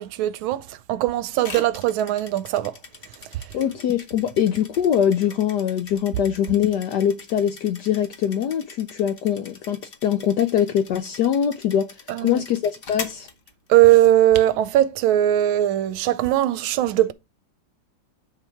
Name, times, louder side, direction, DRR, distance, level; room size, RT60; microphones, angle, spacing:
voice 1, 0.0-2.8 3.3-3.4 12.1-12.4 13.7-17.1, right 13 dB, 80° right, 1.3 m, -20 dB
sound 1, 1.4-14.1, left 4 dB, 45° left, 0.7 m, -42 dB
voice 2, 3.5-11.9 12.2-13.3, left 9 dB, 70° left, 1.0 m, -23 dB
9.7 x 3.5 x 4.4 m
omnidirectional pair, 2.3 m